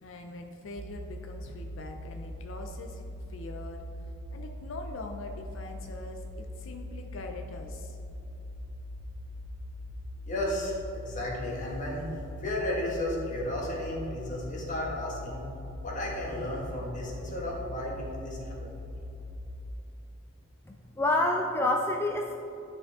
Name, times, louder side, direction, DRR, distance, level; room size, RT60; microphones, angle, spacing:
voice 1, 0.0-3.0 3.3-8.0, left 2 dB, 75° left, 4 dB, 0.5 m, -43 dB
sound 1, 0.8-19.7, left 1 dB, 65° right, 0.4 m, -41 dB
voice 2, 10.2-12.1 12.4-15.4 15.8-19.0, left 1 dB, 40° left, -3 dB, 1.6 m, -34 dB
voice 3, 20.7-22.3, left 2 dB, 10° left, 1 dB, 0.3 m, -27 dB
10.5 x 5.0 x 3.6 m, 2.8 s
head